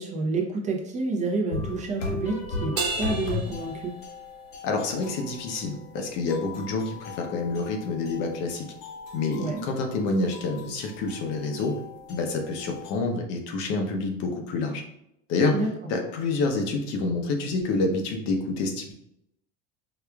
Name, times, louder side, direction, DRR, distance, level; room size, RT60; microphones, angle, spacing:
voice 1, 0.0-3.9 9.4-9.6 15.5-15.7, right 3 dB, 25° right, 0 dB, 0.5 m, -29 dB
sound 1, 1.5-13.0, left 3 dB, 85° left, 1.0 m, -37 dB
Crash cymbal, 2.8-4.5, right 5 dB, 55° right, 1.0 m, -33 dB
voice 2, 4.6-8.7 9.1-11.8 12.1-14.8 15.3-15.6 15.9-18.9, left 3 dB, 60° left, 3 dB, 0.8 m, -28 dB
4.8 x 2.4 x 2.3 m, 0.78 s
supercardioid pair, 135°, 29 cm